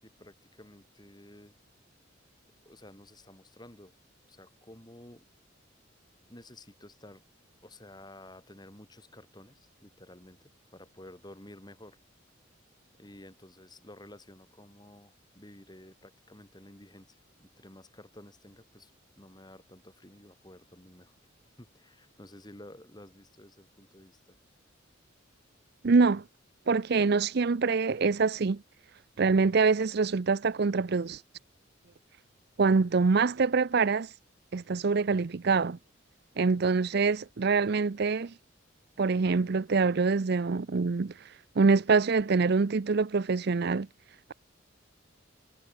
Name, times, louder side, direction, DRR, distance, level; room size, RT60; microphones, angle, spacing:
voice 1, 0.0-1.5 2.6-3.9 4.2-5.3 6.3-7.2 7.6-12.0 13.0-18.9 19.2-21.2 21.6-24.4, left 1 dB, 20° left, 4.2 m, -52 dB
voice 2, 25.8-26.2 26.7-28.6 29.2-31.2 32.6-34.1 34.5-35.8 36.4-38.3 39.0-41.1 41.6-43.9, right 4 dB, 55° right, 0.5 m, -25 dB
head